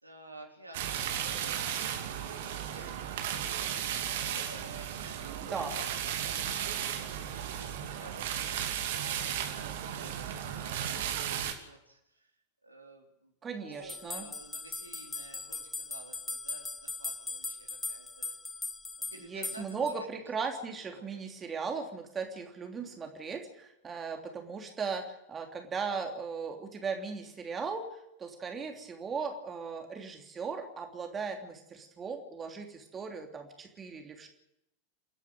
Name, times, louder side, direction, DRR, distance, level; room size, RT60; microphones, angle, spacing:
voice 1, 0.0-12.3 12.6-13.3 13.7-18.3 19.0-20.1 20.9-21.2 28.7-28.8, right 2 dB, 85° right, 1 dB, 4.0 m, -52 dB
sound 1, 0.7-11.5, right 9 dB, 55° right, 2.7 m, -35 dB
voice 2, 13.4-14.3 19.3-27.9 28.2-34.3, right 5 dB, 20° right, 4 dB, 3.1 m, -37 dB
sound 2, 13.9-19.9, left 3 dB, 10° left, 0.7 m, -39 dB
29.5 x 11.0 x 9.0 m, 0.85 s
figure-of-eight pair, 90°, 0 cm